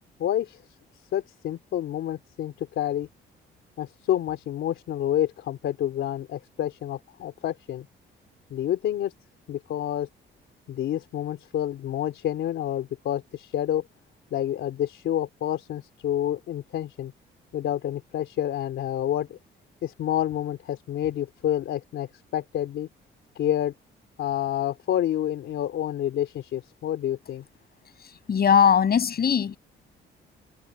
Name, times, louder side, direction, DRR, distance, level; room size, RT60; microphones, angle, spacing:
voice 1, 0.2-0.6 1.1-3.1 3.8-7.9 8.5-9.1 9.5-10.1 10.7-13.9 14.3-17.1 17.5-19.4 19.8-22.9 23.3-23.7 24.2-27.4, left 11 dB, 75° left, 3.2 m, -28 dB
voice 2, 28.3-29.6, left 7 dB, 50° left, 7.3 m, -20 dB
cardioid pair, 90°, 20 cm